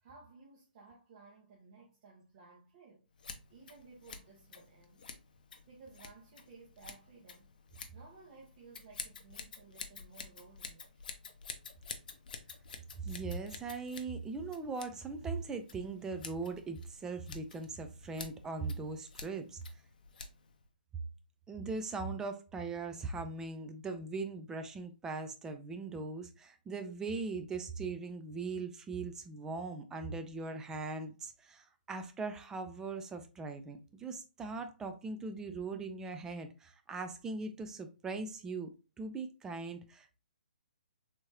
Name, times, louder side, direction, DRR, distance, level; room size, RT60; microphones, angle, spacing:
voice 1, 0.0-3.1 3.5-5.1 5.7-7.5 7.9-11.0, right 4 dB, 45° right, 1.0 m, -57 dB
Scissors, 3.2-20.7, left 5 dB, 60° left, 0.6 m, -50 dB
voice 2, 13.0-19.6 21.5-40.2, right 3 dB, 10° right, 0.4 m, -40 dB
3.5 x 3.0 x 2.8 m
figure-of-eight pair, 135°, 5 cm